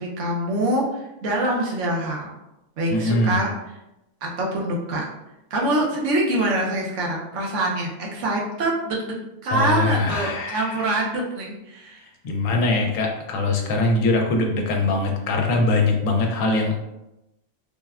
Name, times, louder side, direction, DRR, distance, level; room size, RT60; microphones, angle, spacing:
voice 1, 0.0-2.3 2.8-3.5 4.2-5.0 5.5-9.1 9.4-12.0, right 1 dB, 70° right, -2 dB, 0.9 m, -25 dB
voice 2, 2.9-3.4 9.5-10.9 12.2-16.8, left 2 dB, 80° left, 2 dB, 1.0 m, -22 dB
3.4 x 2.1 x 2.3 m, 0.91 s
omnidirectional pair, 1.4 m